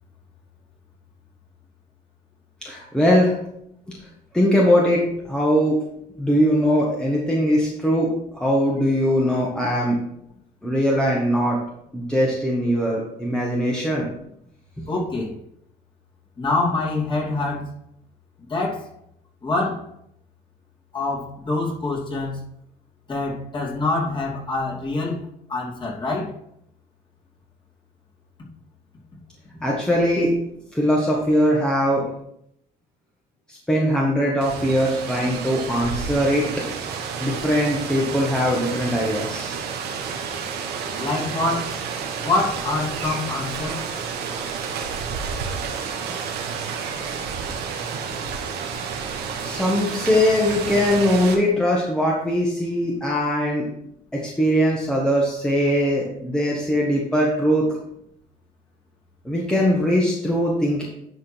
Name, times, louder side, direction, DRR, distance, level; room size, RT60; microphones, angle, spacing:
voice 1, 2.6-3.4 4.3-5.8 6.2-8.1 8.3-10.0 10.6-11.6 11.9-14.1 29.6-30.3 30.7-32.1 33.5-36.5 37.2-39.6 49.4-53.7 54.1-57.8 59.2-60.8, equal, 5° left, -4 dB, 1.5 m, -21 dB
voice 2, 14.9-15.3 16.4-17.7 18.5-18.9 19.4-19.8 20.9-22.4 23.1-25.2 25.5-26.3 41.0-41.8 42.2-43.8, left 2 dB, 25° left, -4 dB, 2.6 m, -25 dB
Rain, 34.4-51.4, right 6 dB, 75° right, 1.4 m, -30 dB
10.5 x 3.7 x 4.6 m, 0.75 s
cardioid pair, 110°, 17 cm